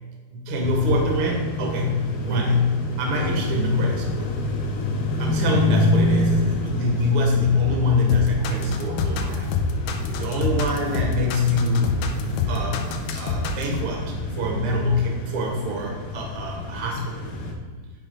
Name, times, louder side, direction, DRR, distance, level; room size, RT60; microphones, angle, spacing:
voice 1, 0.3-4.3 5.2-9.5 10.1-17.2, left 2 dB, 85° right, 0 dB, 1.1 m, -24 dB
sound 1, 0.6-17.5, left 2 dB, 70° left, 2.6 m, -28 dB
sound 2, 8.1-13.8, left 5 dB, 85° left, 2.7 m, -27 dB
10.5 x 3.8 x 5.4 m, 1.4 s
omnidirectional pair, 4.5 m